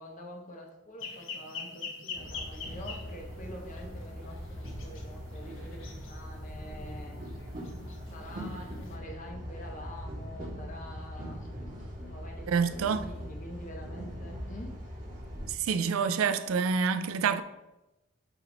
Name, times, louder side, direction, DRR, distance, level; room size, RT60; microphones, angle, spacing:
voice 1, 0.0-7.2 8.1-11.5 11.8-14.8, equal, 40° left, 1.0 m, -46 dB
sound 1, 1.0-9.0, left 4 dB, 65° left, 0.9 m, -45 dB
sound 2, 2.1-15.5, equal, 40° right, 1.7 m, -41 dB
voice 2, 12.5-13.0 15.5-17.4, right 6 dB, 85° right, 0.4 m, -27 dB
8.0 x 2.9 x 4.0 m
head